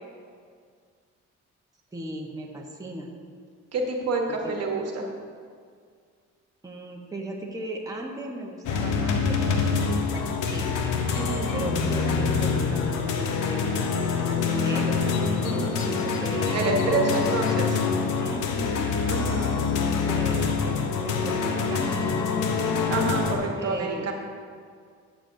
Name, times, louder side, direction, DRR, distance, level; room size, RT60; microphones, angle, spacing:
voice 1, 1.9-3.1 4.3-4.6 6.6-9.8 10.1-10.8 11.5-15.0 15.8-17.5 18.2-18.9 20.0-22.8 23.6-24.1, right 1 dB, 10° right, -1 dB, 1.1 m, -37 dB
voice 2, 3.7-5.1 11.1-11.6 15.4-16.1 16.5-17.6 19.1-19.6 22.9-24.1, right 3 dB, 55° right, 1 dB, 1.3 m, -28 dB
sound 1, 8.6-23.3, left 5 dB, 90° left, 0.9 m, -25 dB
13.5 x 7.1 x 2.7 m, 2.1 s
cardioid pair, 90°, 30 cm